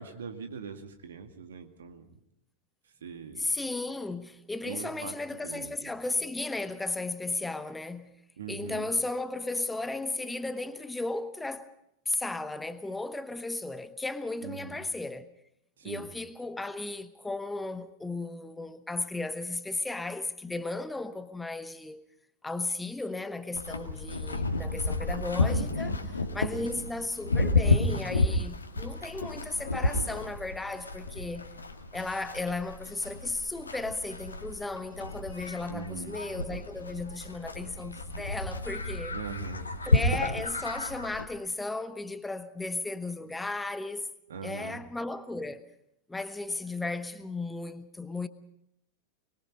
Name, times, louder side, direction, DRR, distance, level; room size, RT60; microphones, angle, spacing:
voice 1, 0.0-2.2 3.0-3.5 4.7-5.9 8.4-8.9 14.4-14.8 15.8-16.1 26.4-26.9 35.7-36.2 39.1-40.1 43.2-43.3 44.3-44.8, right 6 dB, 65° right, 2.2 m, -41 dB
voice 2, 3.4-8.2 8.5-11.7 12.1-15.3 15.8-22.0 22.4-31.5 31.9-39.2 39.8-44.1 44.4-45.6 46.1-48.3, left 2 dB, 10° left, 1.0 m, -35 dB
Livestock farm animals working animals, 23.5-41.2, left 2 dB, 75° left, 2.2 m, -31 dB
25.0 x 21.5 x 5.4 m
figure-of-eight pair, 90°, 0 cm